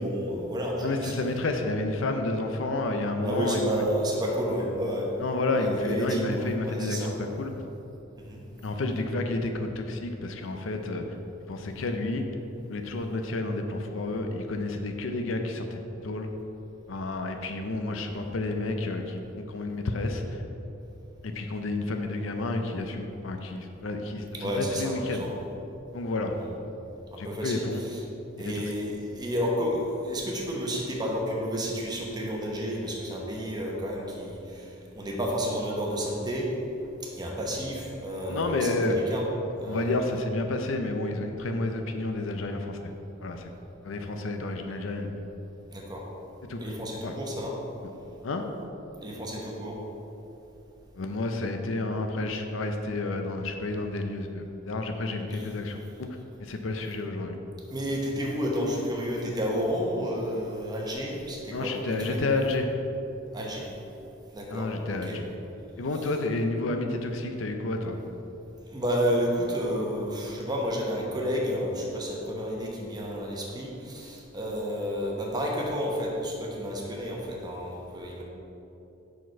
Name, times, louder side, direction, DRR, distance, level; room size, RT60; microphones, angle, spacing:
voice 1, 0.0-1.4 3.2-5.1 5.5-7.1 8.2-8.4 24.3-25.3 26.4-26.5 27.1-28.0 28.4-36.5 37.2-39.2 39.6-40.0 45.7-46.0 46.6-47.6 49.0-49.8 55.3-55.4 57.7-62.2 63.3-63.7 64.3-65.2 68.7-78.2, equal, 20° right, -2 dB, 1.0 m, -31 dB
voice 2, 0.8-3.8 5.2-7.5 8.6-11.0 11.5-12.3 12.6-16.3 16.9-19.2 19.5-20.4 21.2-25.3 25.9-26.3 27.2-27.8 28.4-28.6 38.3-39.0 39.7-42.8 43.2-43.5 43.8-45.1 46.5-46.6 47.0-47.1 48.2-48.4 50.9-56.1 56.4-57.4 61.5-62.7 64.5-65.2 65.8-68.0, left 2 dB, 75° left, 5 dB, 0.5 m, -30 dB
6.0 x 5.0 x 4.5 m, 2.9 s
head